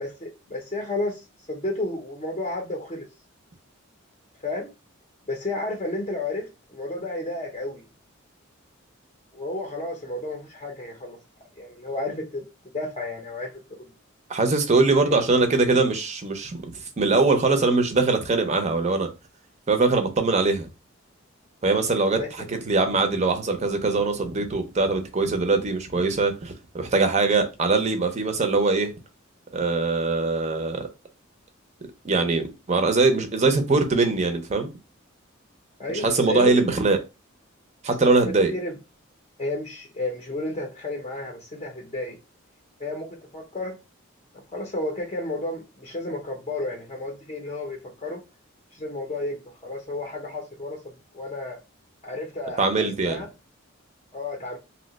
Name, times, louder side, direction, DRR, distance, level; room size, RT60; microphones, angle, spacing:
voice 1, 0.0-3.1 4.4-4.7 5.3-7.8 9.3-11.2 11.6-12.4 12.7-13.5 13.8-13.9 15.0-15.2 22.2-22.5 35.8-36.5 38.5-38.7 39.4-42.2 42.8-43.1 43.3-43.8 44.5-48.2 48.7-51.6 52.0-53.3 54.1-54.6, left 2 dB, 30° left, 0.6 m, -32 dB
voice 2, 14.3-16.7 17.0-19.1 19.7-20.7 21.6-22.2 22.5-28.9 29.5-30.9 32.0-34.7 35.9-37.0 37.8-38.5 52.6-53.2, right 3 dB, 35° right, 0.5 m, -22 dB
2.7 x 2.1 x 3.9 m
head